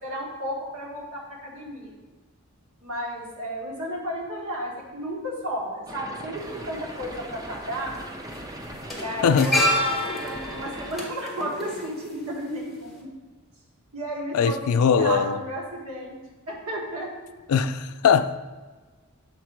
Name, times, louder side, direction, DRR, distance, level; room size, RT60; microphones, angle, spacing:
voice 1, 0.0-1.9 2.8-8.0 8.9-13.1 13.9-16.2 16.5-17.1, right 1 dB, 90° right, -3 dB, 1.5 m, -33 dB
sound 1, 5.9-10.9, right 1 dB, 15° right, 0.6 m, -39 dB
sound 2, 6.4-6.5 7.7-8.0 8.2-12.5 12.8-13.0, left 1 dB, ahead, 1.1 m, -28 dB
voice 2, 9.2-9.5 14.3-15.4 17.5-18.4, left 6 dB, 80° left, 10 dB, 0.4 m, -20 dB
7.1 x 3.7 x 4.5 m, 1.3 s
head